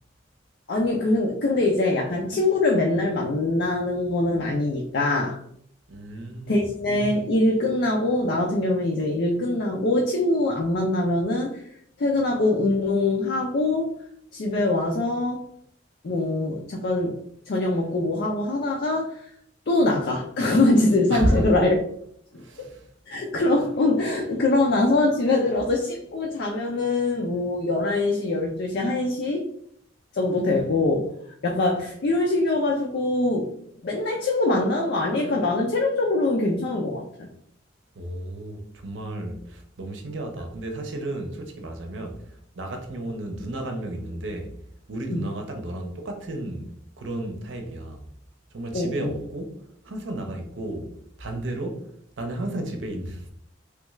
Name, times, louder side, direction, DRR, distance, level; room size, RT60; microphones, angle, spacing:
voice 1, 0.7-5.4 6.5-11.6 12.0-13.9 14.3-15.4 16.0-17.2 17.5-19.2 19.7-21.7 22.3-22.4 23.1-29.4 30.1-31.1 31.4-33.5 33.8-37.3 45.1-45.3 48.7-49.1, left 2 dB, 60° left, 0.5 m, -23 dB
voice 2, 5.9-6.6 21.1-21.5 22.4-22.8 38.0-42.2 42.6-44.5 44.9-48.1 48.5-49.6 49.8-50.9 51.2-51.9 52.2-53.3, right 1 dB, 70° right, 0.6 m, -32 dB
3.3 x 2.3 x 3.1 m
head